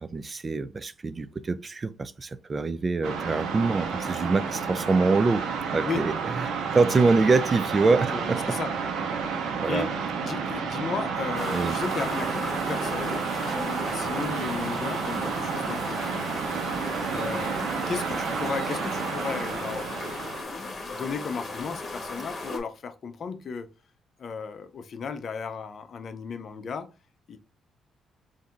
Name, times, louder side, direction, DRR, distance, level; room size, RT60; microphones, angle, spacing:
voice 1, 0.0-8.6 9.6-9.9 11.5-11.7 18.1-18.4, right 3 dB, 30° right, 0.4 m, -25 dB
sound 1, 3.0-20.4, right 5 dB, 80° right, 0.9 m, -30 dB
voice 2, 8.1-8.7 9.7-16.2 17.1-17.6 17.9-20.2 20.5-23.7 24.2-26.9 27.3-27.4, left 5 dB, 55° left, 0.6 m, -35 dB
sound 2, 11.3-22.6, left 2 dB, 35° left, 1.5 m, -36 dB
4.1 x 2.6 x 3.6 m
cardioid pair, 90°, 0 cm